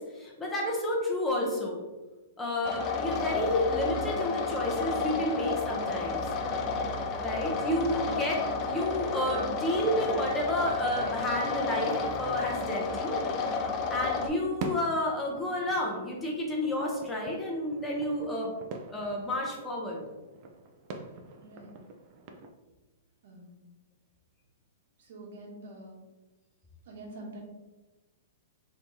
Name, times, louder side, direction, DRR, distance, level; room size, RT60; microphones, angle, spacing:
voice 1, 0.0-1.8 2.4-6.2 7.2-13.2 13.9-18.5 18.9-20.0, left 1 dB, 10° left, -2 dB, 0.7 m, -31 dB
sound 1, 2.6-14.3, left 4 dB, 30° left, 0.4 m, -31 dB
sound 2, 13.4-22.5, right 3 dB, 40° right, 0.4 m, -45 dB
voice 2, 21.3-21.8 23.2-23.7 25.0-26.0 26.8-27.4, right 1 dB, 65° right, -1 dB, 1.1 m, -46 dB
2.8 x 2.8 x 3.5 m, 1.1 s
hypercardioid pair, 150°, 0 cm